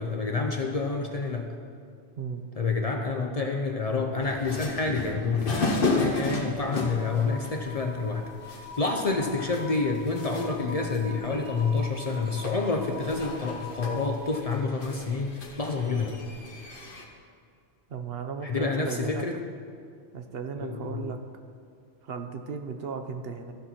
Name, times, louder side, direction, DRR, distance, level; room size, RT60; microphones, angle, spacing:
voice 1, 0.0-1.5 2.6-16.2 18.4-19.4 20.6-21.0, left 4 dB, 40° left, 3 dB, 0.6 m, -28 dB
sound 1, 4.2-17.0, left 3 dB, 55° left, 1.2 m, -34 dB
sound 2, 6.7-14.6, left 4 dB, 20° right, 1.5 m, -44 dB
voice 2, 17.9-19.2 20.1-21.2 22.0-23.5, right 5 dB, 65° right, 6 dB, 0.9 m, -35 dB
14.5 x 6.0 x 4.2 m, 2.3 s
omnidirectional pair, 1.1 m